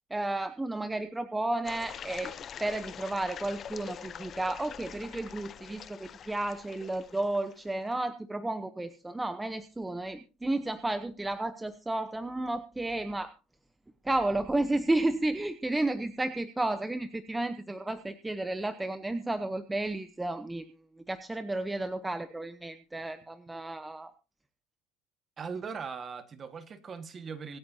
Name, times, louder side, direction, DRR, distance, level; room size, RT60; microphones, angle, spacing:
voice 1, 0.1-2.3 2.6-13.3 14.0-20.7 21.1-24.1, right 2 dB, 10° right, 0.9 m, -32 dB
sound 1, 1.6-7.8, left 8 dB, 35° left, 0.6 m, -45 dB
voice 2, 25.4-27.6, right 5 dB, 30° right, 1.7 m, -39 dB
25.5 x 8.6 x 2.8 m
cardioid pair, 130°, 0 cm